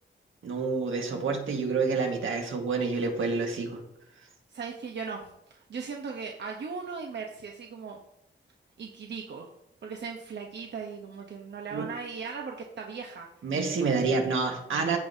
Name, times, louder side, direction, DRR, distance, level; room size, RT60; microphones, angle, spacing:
voice 1, 0.4-3.8 11.7-11.9 13.4-15.0, right 4 dB, 80° right, 2 dB, 1.6 m, -28 dB
voice 2, 4.5-8.0 8.8-9.5 9.8-13.3, right 5 dB, 65° right, 1 dB, 0.9 m, -38 dB
14.5 x 5.3 x 2.7 m, 0.82 s
wide cardioid pair, 150°, 20 cm